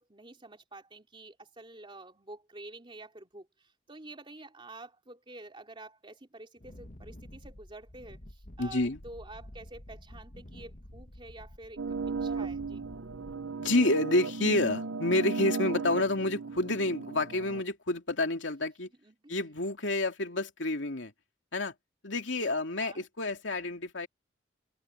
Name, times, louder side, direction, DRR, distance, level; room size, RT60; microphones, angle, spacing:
voice 1, 0.0-12.9 19.0-19.3 22.4-23.0, right 2 dB, 25° right, 3.0 m, -49 dB
Wind, 6.6-13.7, left 1 dB, 45° left, 1.6 m, -50 dB
voice 2, 8.6-9.0 13.6-18.9 19.3-21.1 21.5-21.7 22.0-24.1, left 2 dB, 80° left, 2.7 m, -29 dB
sound 1, 11.8-17.6, right 4 dB, 80° right, 0.8 m, -35 dB
head